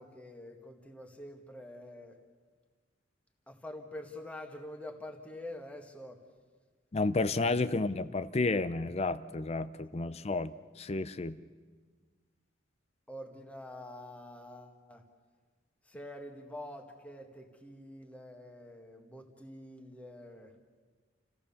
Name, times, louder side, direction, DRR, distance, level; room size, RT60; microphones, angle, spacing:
voice 1, 0.0-2.2 3.5-6.2 9.9-10.1 13.1-15.0 15.8-20.5, left 1 dB, 5° left, 4 dB, 1.8 m, -46 dB
voice 2, 6.9-11.4, left 3 dB, 35° left, 14 dB, 0.5 m, -31 dB
28.5 x 15.0 x 7.1 m, 1.5 s
head